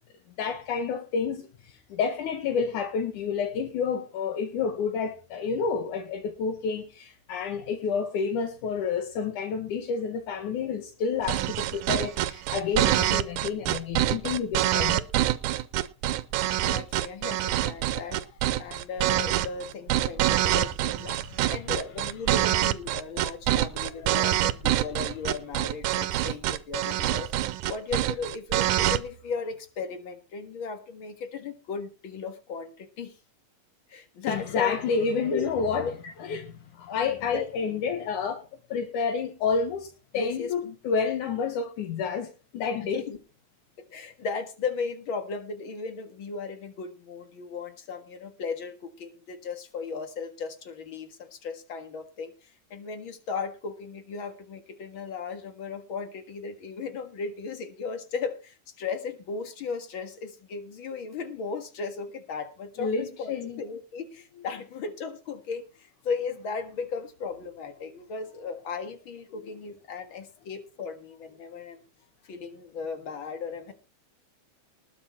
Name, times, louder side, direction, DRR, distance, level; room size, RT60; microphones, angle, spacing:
voice 1, 0.4-15.0 21.4-21.5 23.8-24.3 34.3-35.9 36.2-38.4 38.7-43.1 62.8-63.6, left 5 dB, 90° left, 3.0 m, -29 dB
sound 1, 11.2-29.0, right 14 dB, 90° right, 2.2 m, -25 dB
voice 2, 16.6-18.2 18.6-27.3 27.7-33.2 33.9-34.8 35.1-36.1 36.9-37.5 40.1-40.8 42.7-43.2 43.9-71.8 72.2-73.7, left 5 dB, 45° left, 2.2 m, -36 dB
19.5 x 6.7 x 4.5 m
omnidirectional pair, 3.4 m